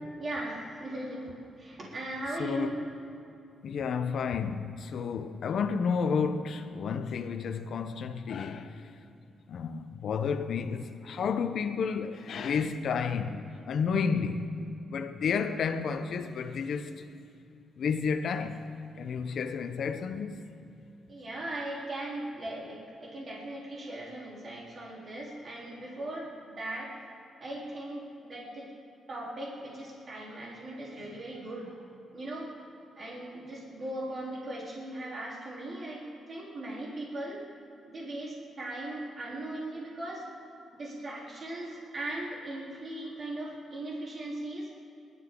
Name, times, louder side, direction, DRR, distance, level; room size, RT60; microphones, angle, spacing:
voice 1, 0.2-2.8 21.1-27.0 27.4-28.7 29.1-31.8 32.1-32.5 33.0-37.4 37.8-40.2 40.7-44.7, right 1 dB, 45° right, 3.7 m, -38 dB
voice 2, 2.4-2.7 3.6-8.9 9.5-14.6 14.9-17.0 17.8-18.6 19.0-20.4, left 6 dB, 65° left, 0.8 m, -31 dB
22.5 x 12.5 x 3.9 m
cardioid pair, 85°, 0 cm